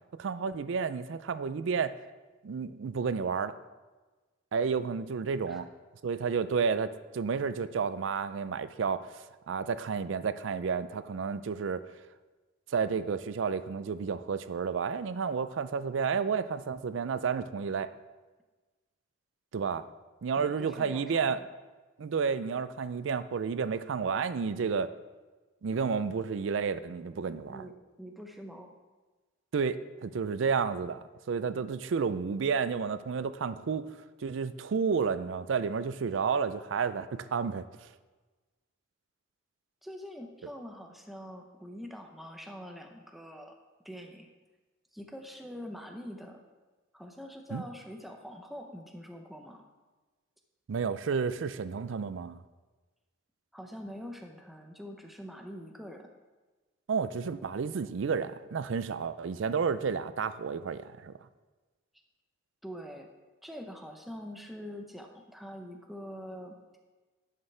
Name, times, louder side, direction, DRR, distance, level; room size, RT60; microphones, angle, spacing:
voice 1, 0.2-1.9 2.4-3.5 4.5-5.7 6.0-11.8 12.7-17.9 19.5-19.8 20.2-21.4 22.0-24.9 25.6-27.6 29.5-29.8 30.0-33.9 34.2-37.9 47.5-47.6 50.7-52.4 56.9-61.1, right 5 dB, 70° right, 13 dB, 0.4 m, -31 dB
voice 2, 20.4-21.5 27.2-27.7 28.0-28.8 39.8-43.6 43.8-44.3 44.9-46.4 46.9-49.6 53.5-56.1 62.6-63.1 63.4-66.6, equal, ahead, 3 dB, 0.6 m, -44 dB
10.5 x 6.7 x 3.3 m, 1.3 s
head